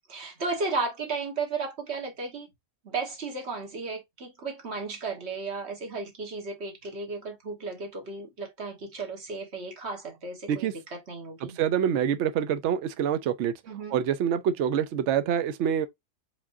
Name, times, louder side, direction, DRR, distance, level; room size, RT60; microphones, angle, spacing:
voice 1, 0.1-2.5 2.8-11.6 13.7-14.0, right 3 dB, 40° right, 1.6 m, -34 dB
voice 2, 11.6-13.5 13.9-15.9, right 9 dB, 90° right, 0.6 m, -26 dB
4.8 x 3.7 x 2.5 m
omnidirectional pair, 1.8 m